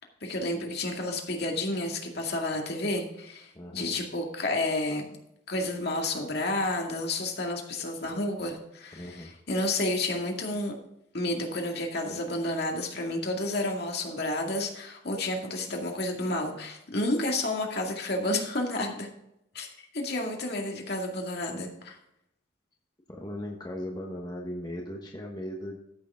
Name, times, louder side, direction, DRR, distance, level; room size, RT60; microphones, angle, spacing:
voice 1, 0.2-5.2 5.5-9.2 9.5-10.7 11.1-19.1 19.5-19.7 19.9-22.0, left 2 dB, 55° left, 1 dB, 2.2 m, -30 dB
voice 2, 3.5-3.9 8.9-9.3 23.1-25.8, equal, 20° left, -1 dB, 1.2 m, -37 dB
14.0 x 6.7 x 3.7 m, 0.80 s
head